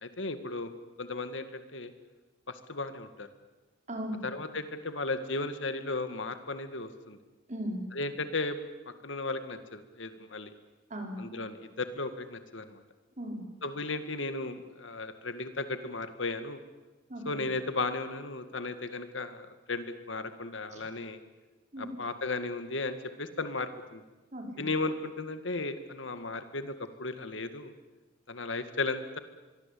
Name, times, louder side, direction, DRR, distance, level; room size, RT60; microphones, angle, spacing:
voice 1, 0.0-0.7 1.0-1.9 2.5-3.3 4.2-7.2 7.9-8.6 8.9-10.5 11.2-12.8 13.6-16.6 17.3-21.2 21.8-24.0 24.6-27.7 28.3-29.2, left 3 dB, 70° left, 10 dB, 2.0 m, -35 dB
voice 2, 3.9-4.3 7.5-7.9 10.9-11.3 13.2-13.5 17.1-17.4 20.7-20.8 21.7-22.0 24.3-24.6, equal, 40° right, 2 dB, 5.4 m, -37 dB
25.5 x 22.5 x 8.6 m, 1.2 s
head